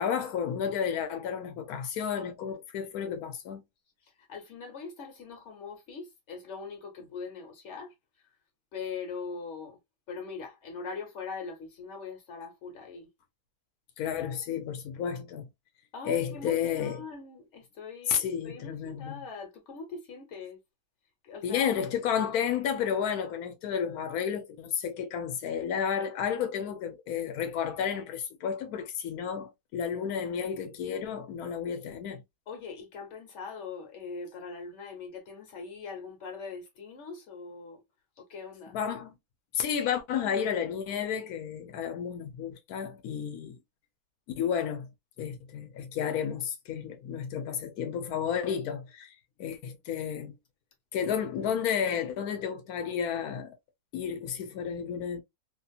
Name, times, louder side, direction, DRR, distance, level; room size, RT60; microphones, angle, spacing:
voice 1, 0.0-3.6 14.0-15.5 16.0-17.0 18.1-19.2 21.4-32.2 38.7-39.2 39.5-43.6 44.4-44.9 45.2-49.1 49.4-50.3 50.9-53.6 53.9-55.2, left 8 dB, 90° left, 1.1 m, -32 dB
voice 2, 4.3-7.9 8.7-9.8 10.1-13.1 15.9-20.6 21.2-21.7 32.5-37.8 38.2-38.8 50.9-51.5, left 5 dB, 55° left, 1.4 m, -41 dB
2.8 x 2.7 x 2.3 m
omnidirectional pair, 1.5 m